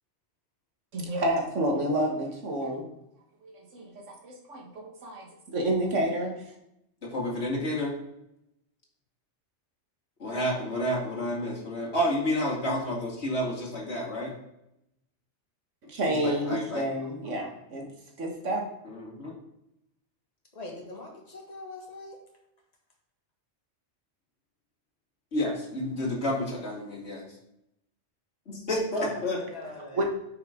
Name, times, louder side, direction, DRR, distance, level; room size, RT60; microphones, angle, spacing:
voice 1, 0.9-2.9 3.4-6.4 15.8-17.9 18.2-18.6 29.9-30.1, right 1 dB, 85° right, 1 dB, 1.8 m, -29 dB
voice 2, 7.0-8.0 10.2-14.3 16.1-16.9 18.8-19.3 25.3-27.3 28.5-29.4, left 1 dB, 65° left, -3 dB, 2.6 m, -30 dB
voice 3, 20.5-22.2 28.9-30.1, left 2 dB, 35° left, -2 dB, 1.9 m, -43 dB
9.1 x 5.8 x 3.7 m, 0.83 s
omnidirectional pair, 1.2 m